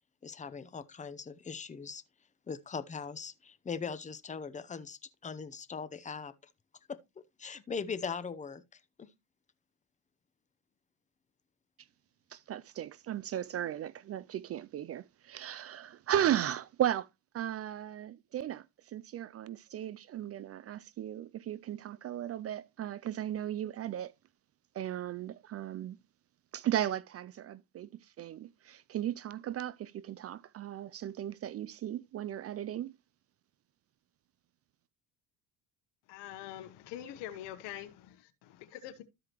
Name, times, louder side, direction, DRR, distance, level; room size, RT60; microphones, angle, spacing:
voice 1, 0.2-2.0 2.5-6.3 6.9-9.1, left 5 dB, 20° left, 0.7 m, -40 dB
voice 2, 12.3-17.1 17.3-24.1 24.7-26.0 26.5-32.9, right 11 dB, 40° right, 0.4 m, -36 dB
voice 3, 36.1-39.0, left 12 dB, 80° left, 1.2 m, -44 dB
13.0 x 4.9 x 3.0 m
supercardioid pair, 95°, 41 cm